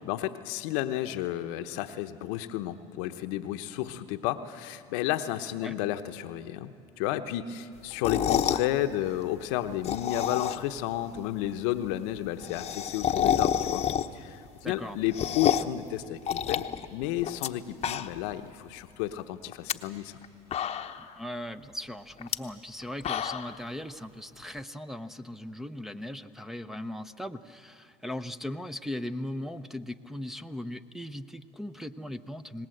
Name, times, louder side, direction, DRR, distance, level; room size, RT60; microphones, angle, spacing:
voice 1, 0.1-13.8 14.1-16.6 16.9-20.2, left 13 dB, 75° left, 8 dB, 0.9 m, -32 dB
sound 1, 7.9-8.7 9.7-10.8 11.1-11.2 11.4-11.5 11.8-11.9 12.1-14.3 14.7-15.8 16.3-17.5 17.7-18.3 18.7-18.8 19.5-19.7 20.2-20.3 20.5-21.1 22.2-22.4 22.8-23.6, left 9 dB, 40° left, 0.9 m, -29 dB
voice 2, 14.6-15.0 21.0-32.7, left 1 dB, ahead, 5 dB, 0.8 m, -38 dB
26.5 x 19.5 x 7.9 m, 2.6 s
supercardioid pair, 90°, 17 cm